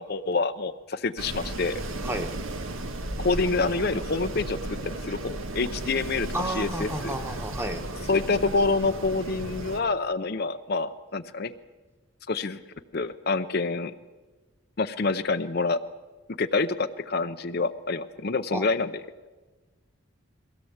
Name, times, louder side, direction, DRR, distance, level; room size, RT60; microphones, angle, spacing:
voice 1, 0.0-1.8 3.2-4.6 4.8-6.3 6.5-7.1 8.1-11.5 12.3-12.6 12.9-13.9 14.8-15.8 16.4-18.9, left 3 dB, 50° left, 9 dB, 0.7 m, -27 dB
Wind, 1.2-9.8, right 1 dB, 80° right, 1.5 m, -35 dB
voice 2, 6.3-7.8 18.5-18.7, right 1 dB, 10° right, 6 dB, 1.3 m, -31 dB
22.5 x 17.0 x 8.0 m, 1.3 s
head